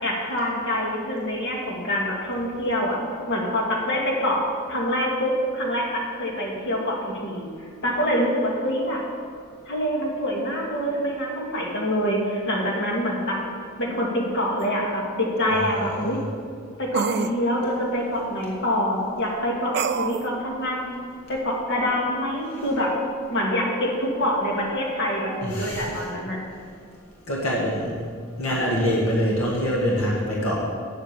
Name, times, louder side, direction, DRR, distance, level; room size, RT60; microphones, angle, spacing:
voice 1, 0.0-3.0 3.3-4.4 4.7-7.0 7.2-7.5 7.8-9.0 9.7-13.4 13.8-16.2 16.8-20.9 21.3-22.9 23.3-26.4, equal, 60° left, -2 dB, 2.1 m, -25 dB
sound 1, 14.6-14.7 16.9-17.4 19.7-20.3, right 6 dB, 55° right, 0.4 m, -26 dB
voice 2, 15.8-16.2 25.4-26.0 27.3-28.1 28.4-30.7, equal, 80° left, -4 dB, 1.7 m, -25 dB
8.8 x 7.6 x 6.7 m, 2.1 s
head